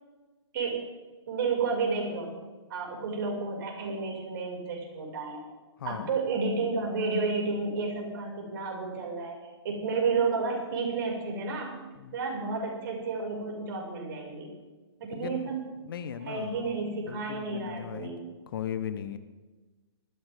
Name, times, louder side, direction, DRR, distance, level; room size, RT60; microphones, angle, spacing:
voice 1, 0.5-0.8 1.3-2.3 2.7-5.4 5.8-9.4 9.6-11.7 12.1-14.5 15.0-15.6 16.2-18.2, right 4 dB, 50° right, -1 dB, 5.9 m, -31 dB
voice 2, 5.8-6.1 12.0-12.2 15.1-15.5 15.8-16.5 17.1-18.1 18.5-19.2, left 9 dB, 50° left, 11 dB, 1.1 m, -37 dB
20.5 x 14.5 x 3.7 m, 1.2 s
figure-of-eight pair, 120°, 14 cm